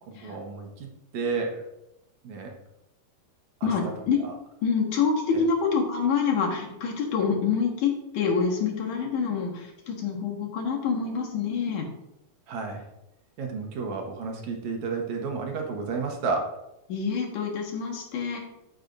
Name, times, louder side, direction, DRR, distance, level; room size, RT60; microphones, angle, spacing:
voice 1, 0.2-1.6 2.2-2.5 3.6-3.7 4.2-4.3 5.3-5.4 12.5-12.8 13.4-16.5, right 4 dB, 65° right, 2 dB, 2.3 m, -31 dB
voice 2, 3.6-4.2 4.6-11.9 16.9-18.4, left 6 dB, 75° left, -1 dB, 3.0 m, -26 dB
13.5 x 6.7 x 2.6 m, 0.88 s
omnidirectional pair, 3.6 m